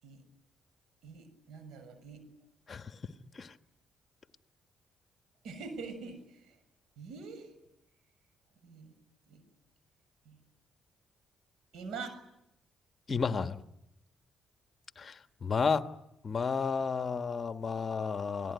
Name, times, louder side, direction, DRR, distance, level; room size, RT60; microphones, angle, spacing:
voice 1, 1.0-2.2 5.4-6.6 7.0-7.5 8.6-8.9 9.3-9.4 10.3-10.4 11.7-12.2, right 4 dB, 80° right, 7.0 m, -44 dB
voice 2, 13.1-13.6 15.0-15.9 16.2-18.5, left 5 dB, 40° left, 1.6 m, -32 dB
28.5 x 19.0 x 9.7 m
cardioid pair, 90°, 0 cm